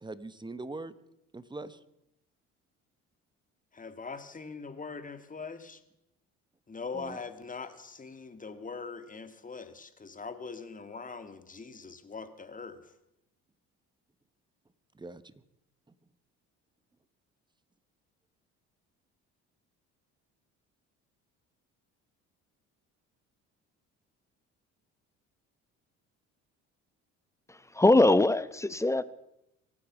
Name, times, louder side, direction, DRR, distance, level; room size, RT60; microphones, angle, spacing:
voice 1, 0.0-0.9 1.3-1.8 6.9-7.2 14.9-15.3, right 2 dB, 15° right, 1.0 m, -41 dB
voice 2, 3.7-5.8 6.7-12.9, left 4 dB, 25° left, 1.9 m, -42 dB
voice 3, 27.5-29.0, left 2 dB, 10° left, 0.9 m, -23 dB
24.5 x 8.6 x 6.1 m
supercardioid pair, 80°, 31 cm